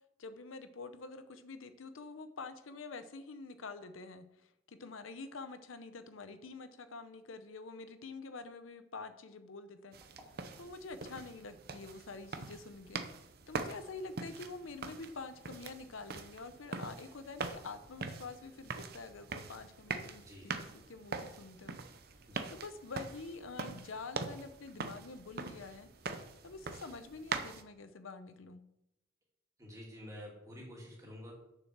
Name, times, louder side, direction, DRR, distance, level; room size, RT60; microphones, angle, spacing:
voice 1, 0.2-10.0 10.6-13.0 13.5-21.8 22.5-25.9 26.4-28.6, left 3 dB, 80° left, 10 dB, 0.7 m, -47 dB
sound 1, 9.9-27.6, right 4 dB, 50° right, 0.7 m, -43 dB
voice 2, 20.2-20.5 22.3-22.6 29.6-31.3, left 1 dB, 15° right, -3 dB, 2.5 m, -49 dB
7.1 x 6.9 x 6.0 m, 0.84 s
head